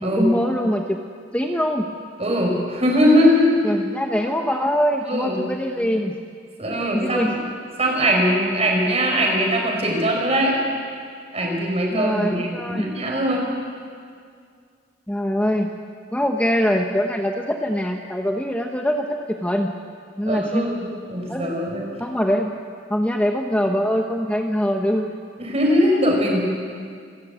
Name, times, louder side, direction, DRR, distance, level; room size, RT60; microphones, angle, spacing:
voice 1, 0.0-1.0 1.3-1.9 3.6-6.2 6.7-7.4 11.9-12.9 15.1-15.7 16.1-19.8 20.2-20.7 21.3-21.5 22.0-22.5 22.9-25.1, equal, 5° left, 2 dB, 0.9 m, -23 dB
voice 2, 2.2-3.6 5.1-5.4 6.6-7.4 7.8-10.6 11.3-13.4 20.3-21.9 25.4-26.4, equal, 35° right, 0 dB, 5.0 m, -20 dB
27.5 x 13.5 x 8.2 m, 2.2 s
head